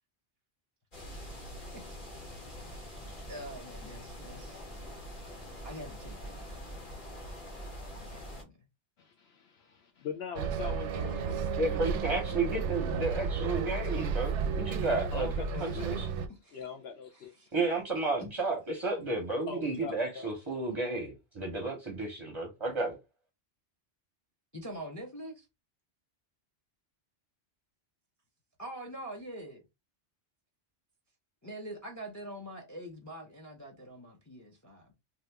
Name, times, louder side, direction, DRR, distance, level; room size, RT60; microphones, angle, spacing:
sound 1, 0.9-8.4, equal, 45° left, 1.3 m, -44 dB
voice 1, 3.3-4.6 5.6-6.9 8.0-8.5 15.5-15.8 16.4-16.6 17.1-17.5 24.5-25.5 28.6-29.6 31.4-34.9, right 1 dB, 20° left, 0.6 m, -45 dB
voice 2, 9.0-11.5 15.1-16.1 16.5-17.3 19.5-20.6, left 7 dB, 70° left, 0.8 m, -42 dB
Bus, 10.4-16.3, right 5 dB, 85° right, 0.9 m, -33 dB
voice 3, 11.6-15.3 15.6-16.1 17.5-23.0, right 3 dB, 30° right, 0.6 m, -32 dB
2.8 x 2.4 x 3.3 m
omnidirectional pair, 1.2 m